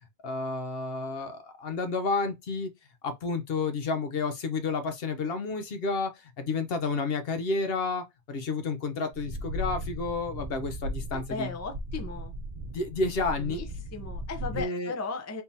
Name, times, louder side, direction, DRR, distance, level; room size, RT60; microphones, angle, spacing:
voice 1, 0.2-2.7 3.0-11.5 12.7-13.6 14.5-14.9, left 3 dB, 65° left, 0.9 m, -31 dB
sound 1, 9.1-14.6, equal, 50° right, 0.7 m, -37 dB
voice 2, 11.1-12.4 13.4-13.7 13.9-15.4, left 3 dB, 20° left, 0.4 m, -36 dB
3.6 x 2.8 x 2.6 m
omnidirectional pair, 1.2 m